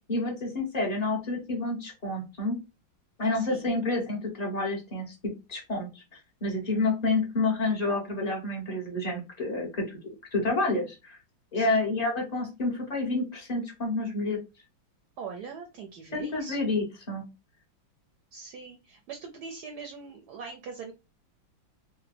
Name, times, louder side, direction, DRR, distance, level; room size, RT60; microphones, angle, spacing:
voice 1, 0.1-2.6 3.2-5.1 5.5-6.0 6.4-10.0 10.3-11.2 11.5-14.4 16.1-17.2, left 2 dB, 35° left, -1 dB, 0.6 m, -29 dB
voice 2, 3.3-3.7 11.5-11.8 15.2-16.6 18.3-20.9, right 5 dB, 70° right, 3 dB, 1.0 m, -42 dB
3.3 x 2.1 x 3.2 m, 0.27 s
omnidirectional pair, 2.1 m